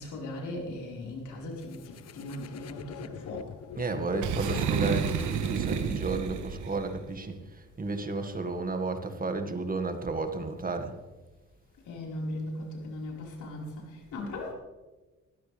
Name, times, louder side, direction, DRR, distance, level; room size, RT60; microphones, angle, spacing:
voice 1, 0.0-3.5 11.9-13.8 14.1-14.5, left 1 dB, 80° left, -1 dB, 4.8 m, -38 dB
sound 1, 1.6-6.5, left 9 dB, 55° left, 0.9 m, -44 dB
voice 2, 3.8-11.0, right 3 dB, 30° right, 6 dB, 1.9 m, -32 dB
Boom, 4.2-6.9, right 7 dB, 75° right, 1.4 m, -30 dB
20.5 x 15.5 x 3.5 m, 1.2 s
cardioid pair, 90°, 30 cm